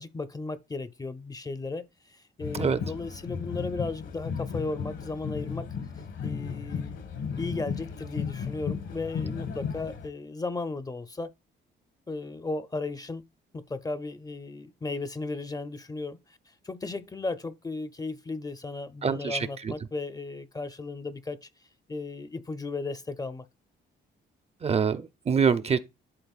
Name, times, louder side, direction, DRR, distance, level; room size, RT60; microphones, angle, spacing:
voice 1, 0.0-5.7 6.2-7.0 7.4-11.3 12.1-13.2 13.5-16.4 16.6-21.5 21.9-23.5, left 3 dB, 20° left, 0.5 m, -35 dB
sound 1, 2.4-10.1, left 6 dB, 75° left, 1.4 m, -35 dB
voice 2, 19.0-19.7 24.6-25.8, right 6 dB, 30° right, 0.5 m, -25 dB
11.5 x 4.0 x 2.4 m
cardioid pair, 90°, 20 cm